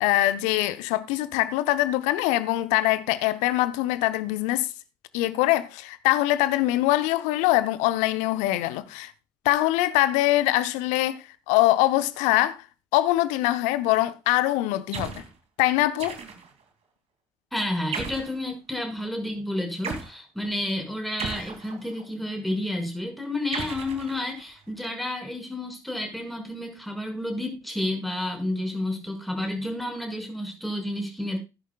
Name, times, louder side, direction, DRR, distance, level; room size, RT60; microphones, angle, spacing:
voice 1, 0.0-4.7 5.1-9.1 9.4-12.6 12.9-15.2 15.6-16.2, left 16 dB, 70° left, 0.8 m, -23 dB
sound 1, 14.9-15.3 16.0-16.6 17.9-18.4 19.8-20.1 21.2-22.1 23.5-24.6, right 5 dB, 55° right, 2.6 m, -36 dB
voice 2, 17.5-31.4, left 1 dB, ahead, 5.8 m, -30 dB
15.5 x 11.0 x 2.3 m
figure-of-eight pair, 45°, 13 cm